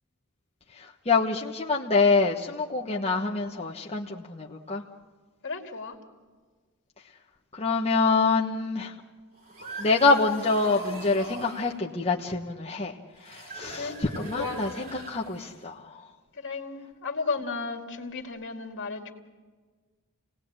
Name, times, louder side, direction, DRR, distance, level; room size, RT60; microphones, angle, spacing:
voice 1, 1.1-4.8 7.6-8.9 9.8-12.9 13.3-15.8 17.8-18.0, left 3 dB, 30° left, -2 dB, 1.2 m, -26 dB
voice 2, 5.4-6.0 13.8-14.0 14.4-14.6 16.4-19.1, left 4 dB, 60° left, 3 dB, 2.3 m, -34 dB
sound 1, 9.3-11.8 13.2-15.6, right 2 dB, 45° right, 5.8 m, -41 dB
29.0 x 18.5 x 8.9 m, 1.5 s
head